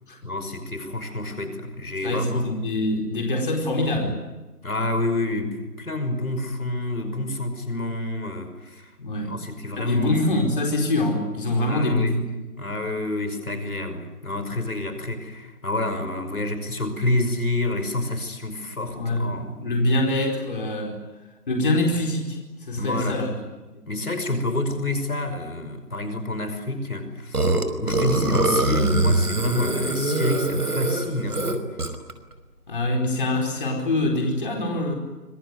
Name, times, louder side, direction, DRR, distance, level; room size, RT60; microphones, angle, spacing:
voice 1, 0.2-2.5 4.6-8.9 9.3-10.4 11.6-12.2 12.6-19.6 22.8-23.3 23.9-27.5 27.8-31.7, left 2 dB, 65° left, 9 dB, 5.5 m, -28 dB
voice 2, 2.0-4.2 9.0-9.3 9.8-12.3 18.9-21.0 21.5-23.3 32.7-34.9, left 1 dB, 35° left, 1 dB, 4.6 m, -24 dB
Burping eructation, 27.3-32.1, right 2 dB, 70° right, 5.1 m, -23 dB
26.0 x 23.0 x 9.6 m, 1.1 s
figure-of-eight pair, 165°, 47 cm